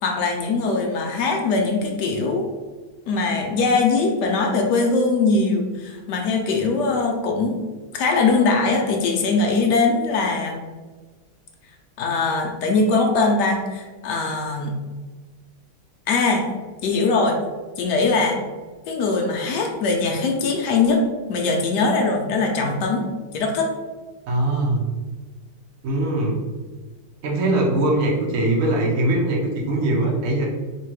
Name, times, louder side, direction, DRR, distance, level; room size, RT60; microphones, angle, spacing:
voice 1, 0.0-2.5 3.1-7.6 7.9-10.6 12.0-14.7 16.1-16.5 16.8-17.4 17.8-18.4 18.9-21.0 21.3-23.0 23.3-23.7, left 3 dB, 75° left, 2 dB, 1.0 m, -21 dB
voice 2, 24.3-24.9 25.8-26.4 27.2-30.5, right 2 dB, 55° right, -2 dB, 1.0 m, -21 dB
3.3 x 2.8 x 4.6 m, 1.3 s
omnidirectional pair, 2.3 m